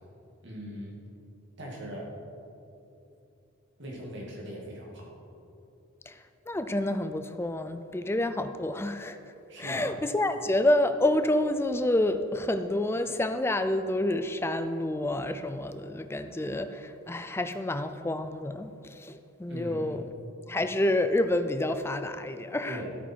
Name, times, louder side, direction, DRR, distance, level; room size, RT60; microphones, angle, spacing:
voice 1, 0.4-1.0 1.6-2.1 3.8-5.1 9.5-9.9 19.5-20.0 22.7-22.9, equal, 55° right, -2 dB, 2.3 m, -40 dB
voice 2, 6.1-20.0 20.5-22.8, left 1 dB, 10° left, 10 dB, 0.4 m, -28 dB
13.0 x 8.8 x 4.5 m, 2.8 s
head